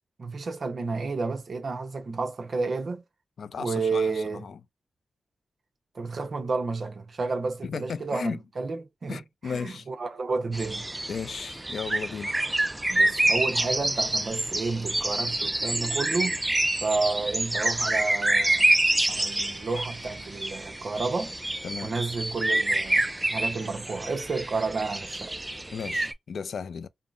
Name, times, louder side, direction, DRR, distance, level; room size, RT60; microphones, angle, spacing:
voice 1, 0.2-3.0 3.6-4.4 5.9-9.2 9.5-10.9 12.9-16.4 16.8-18.7 19.1-21.4 21.8-25.4, right 4 dB, 55° right, 0.7 m, -31 dB
voice 2, 3.4-4.6 7.6-8.4 9.1-9.9 11.1-12.4 21.6-22.0 25.7-26.9, left 6 dB, 70° left, 0.3 m, -35 dB
sound 1, 10.5-26.1, right 1 dB, 15° right, 0.3 m, -27 dB
Bass guitar, 13.4-19.6, right 2 dB, 10° left, 0.8 m, -52 dB
3.6 x 2.0 x 2.3 m
wide cardioid pair, 90°, 0 cm